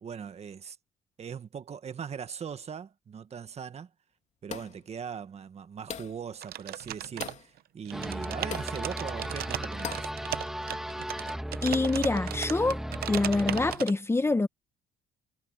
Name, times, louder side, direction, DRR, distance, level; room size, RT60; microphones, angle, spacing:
voice 1, 0.0-0.8 1.2-3.9 4.4-10.1, right 7 dB, 40° right, 1.6 m, -40 dB
sound 1, 4.5-4.9 5.9-6.3 7.2-7.5 8.5-8.8 9.8-10.2, left 7 dB, 45° left, 3.0 m, -39 dB
sound 2, 6.4-7.6 7.9-13.9, right 13 dB, 65° right, 0.8 m, -37 dB
sound 3, 7.9-13.7, equal, ahead, 1.8 m, -36 dB
voice 2, 11.6-12.8 13.1-14.5, left 3 dB, 15° left, 1.0 m, -26 dB
cardioid pair, 110°, 17 cm